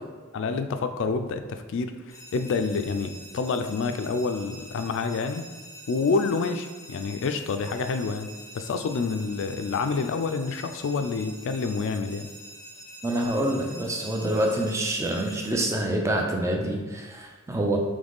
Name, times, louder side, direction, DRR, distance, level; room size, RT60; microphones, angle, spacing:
voice 1, 0.3-5.4 5.9-8.3 8.5-12.3, left 4 dB, 60° left, 8 dB, 0.3 m, -28 dB
sound 1, 2.1-15.5, equal, 15° left, 0.7 m, -45 dB
voice 2, 13.0-17.8, right 1 dB, 15° right, 0 dB, 0.5 m, -26 dB
3.9 x 3.2 x 3.5 m, 1.4 s
head